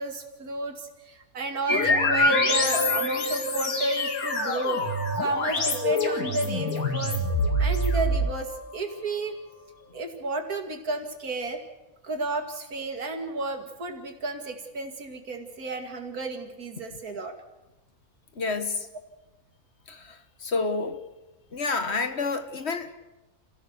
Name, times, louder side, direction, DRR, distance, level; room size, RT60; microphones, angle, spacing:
voice 1, 0.0-4.8 5.2-7.2 7.6-9.4 9.9-11.6 12.0-17.3, right 2 dB, 85° right, 2.7 m, -32 dB
sound 1, 1.7-8.9, left 1 dB, 80° left, 2.7 m, -25 dB
voice 2, 18.3-18.9 19.9-21.0 21.5-22.9, left 4 dB, 50° left, 1.4 m, -29 dB
28.0 x 15.5 x 6.8 m
omnidirectional pair, 1.5 m